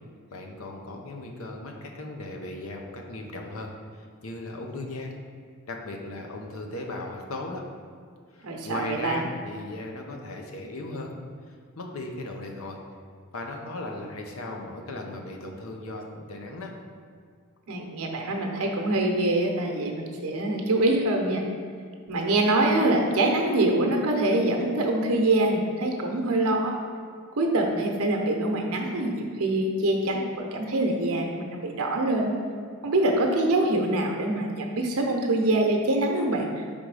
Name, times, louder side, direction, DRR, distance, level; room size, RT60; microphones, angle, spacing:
voice 1, 0.3-5.1 5.7-7.7 8.3-11.1 11.5-12.8 13.3-16.7, left 2 dB, 75° left, 2 dB, 0.7 m, -37 dB
voice 2, 8.4-9.2 17.7-21.4 22.1-26.7 27.4-32.3 32.8-36.5, right 2 dB, 85° right, 2 dB, 0.8 m, -24 dB
5.3 x 3.7 x 4.8 m, 2.1 s
head